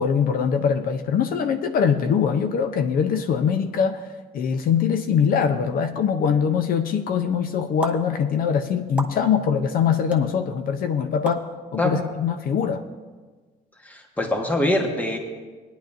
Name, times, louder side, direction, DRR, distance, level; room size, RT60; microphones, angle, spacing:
voice 1, 0.0-4.1 4.3-11.4 11.7-12.8, left 7 dB, 60° left, 8 dB, 0.7 m, -22 dB
sound 1, 7.8-7.9 9.0-9.1 10.1-10.2 11.2-11.4, right 2 dB, 5° right, 0.9 m, -30 dB
voice 2, 13.8-15.2, left 1 dB, 10° left, 2 dB, 1.3 m, -23 dB
18.0 x 10.5 x 2.6 m, 1.4 s
cardioid pair, 110°, 17 cm